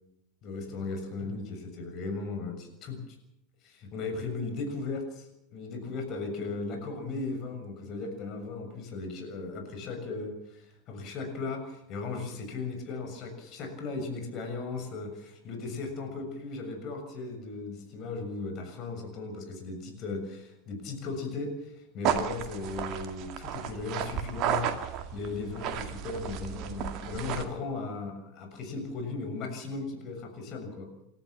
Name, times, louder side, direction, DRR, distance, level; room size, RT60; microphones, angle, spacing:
voice 1, 0.4-3.0 3.6-30.9, left 3 dB, 40° left, 5 dB, 6.7 m, -37 dB
sound 1, 22.0-27.5, right 9 dB, 45° right, 2.3 m, -33 dB
28.5 x 13.5 x 7.3 m, 0.83 s
figure-of-eight pair, 80°, 0 cm